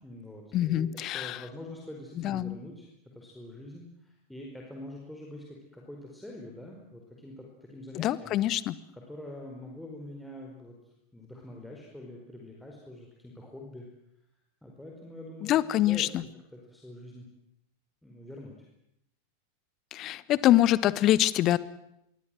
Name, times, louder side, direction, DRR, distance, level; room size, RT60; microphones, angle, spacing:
voice 1, 0.0-0.9 1.1-2.9 3.1-8.4 8.9-10.8 11.1-13.9 14.6-15.6 15.9-16.0 16.5-17.3 18.0-18.5, left 1 dB, 5° left, -1 dB, 4.9 m, -45 dB
voice 2, 0.5-1.4 2.2-2.5 7.9-8.7 15.4-16.2 19.9-21.6, left 13 dB, 35° left, 18 dB, 1.3 m, -25 dB
25.5 x 23.5 x 7.8 m, 0.80 s
figure-of-eight pair, 90°, 0 cm